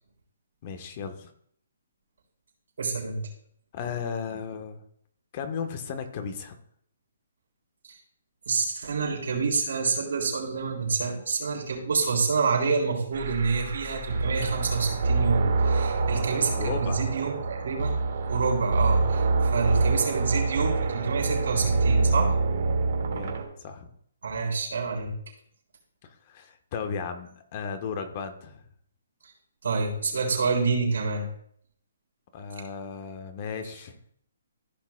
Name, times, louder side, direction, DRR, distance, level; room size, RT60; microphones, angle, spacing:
voice 1, 0.6-1.3 3.7-4.8 5.3-6.6 16.6-17.0 23.1-23.9 26.0-28.6 32.3-34.0, left 6 dB, 35° left, 7 dB, 1.1 m, -35 dB
voice 2, 2.8-3.2 8.5-18.0 18.3-22.4 24.2-25.1 29.6-31.3, right 4 dB, 75° right, 0 dB, 3.7 m, -27 dB
sound 1, 13.1-23.4, right 3 dB, 60° right, 1.9 m, -26 dB
15.0 x 6.0 x 2.3 m, 0.65 s
hypercardioid pair, 155°, 0 cm